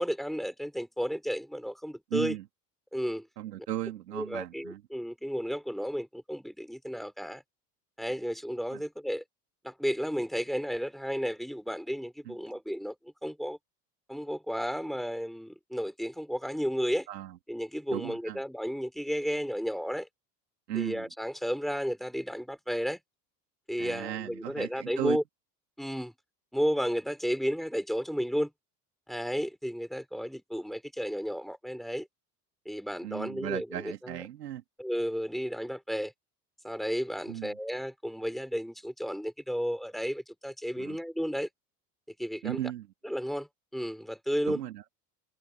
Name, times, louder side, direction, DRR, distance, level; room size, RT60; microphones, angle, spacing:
voice 1, 0.0-2.4 2.9-3.3 4.1-7.4 8.0-9.2 9.6-13.6 14.1-17.1 17.5-20.1 20.7-23.0 23.7-25.2 25.8-26.1 26.5-28.5 29.1-32.1 32.6-34.1 34.8-36.1 36.6-41.5 42.2-42.6 43.0-44.6, equal, ahead, 5.0 m, -33 dB
voice 2, 2.1-2.4 3.4-4.8 8.7-8.8 12.3-12.4 17.1-17.4 17.9-18.4 20.7-21.1 23.8-25.2 33.0-34.6 37.3-37.5 40.8-41.0 42.4-42.9 44.4-45.0, right 12 dB, 80° right, 2.8 m, -36 dB
hypercardioid pair, 70°, 47 cm